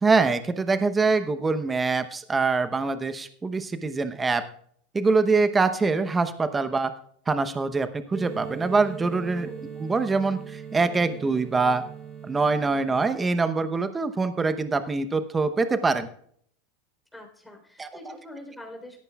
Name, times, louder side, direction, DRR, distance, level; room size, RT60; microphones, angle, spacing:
voice 1, 0.0-4.4 4.9-6.9 7.3-9.5 9.8-11.8 12.2-16.1 17.8-18.2, right 4 dB, 20° right, 10 dB, 0.9 m, -24 dB
sound 1, 8.1-13.1, right 7 dB, 35° right, 3.6 m, -39 dB
voice 2, 9.4-9.7 17.1-19.0, left 1 dB, 10° left, 1 dB, 3.8 m, -44 dB
17.5 x 13.5 x 2.4 m, 0.63 s
hypercardioid pair, 95°, 0 cm